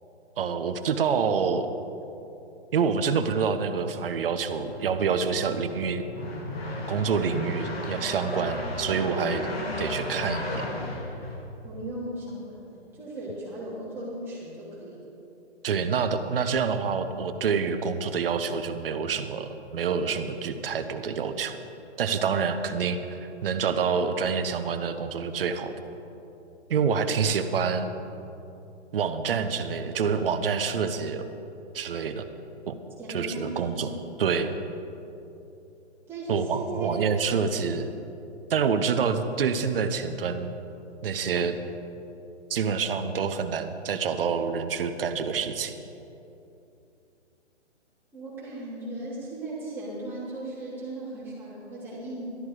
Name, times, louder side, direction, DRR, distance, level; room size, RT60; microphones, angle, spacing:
voice 1, 0.4-1.7 2.7-6.0 6.9-9.5 9.8-10.7 15.6-21.6 22.0-25.7 26.7-27.9 28.9-31.3 31.7-32.3 32.7-32.8 33.1-33.9 34.2-34.5 36.3-37.9 38.5-40.5 41.0-41.6 42.5-45.7, right 6 dB, 50° right, 9 dB, 1.0 m, -27 dB
sound 1, 4.3-11.9, left 1 dB, 55° left, 2.2 m, -35 dB
voice 2, 11.6-15.0 33.0-33.9 36.1-36.9 48.1-52.3, right 1 dB, 5° right, -10 dB, 3.0 m, -37 dB
13.0 x 11.5 x 4.8 m, 2.9 s
hypercardioid pair, 160°, 35 cm